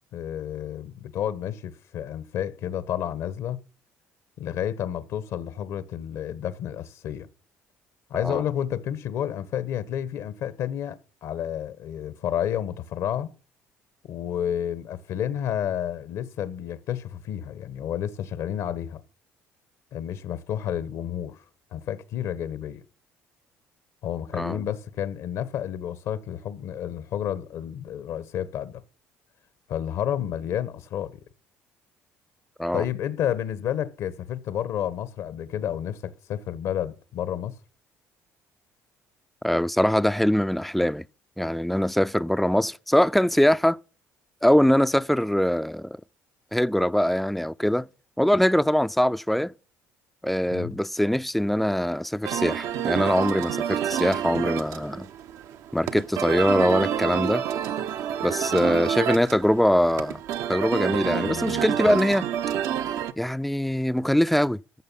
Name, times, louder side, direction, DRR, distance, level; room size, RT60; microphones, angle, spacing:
voice 1, 0.1-3.6 4.4-7.3 8.1-13.3 14.0-19.0 19.9-21.4 21.7-22.8 24.0-28.8 29.7-31.2 32.7-37.6 50.5-50.7 61.0-62.0, left 10 dB, 70° left, 1.2 m, -30 dB
voice 2, 24.3-24.6 32.6-32.9 39.4-41.0 41.4-43.8 44.4-46.0 46.5-47.9 48.2-49.5 50.2-55.1 55.7-57.4 58.2-60.2 60.5-62.3 63.2-64.6, equal, ahead, 0.4 m, -22 dB
sound 1, 52.2-63.1, right 9 dB, 70° right, 0.8 m, -29 dB
14.0 x 6.6 x 5.6 m
cardioid pair, 90°, 6 cm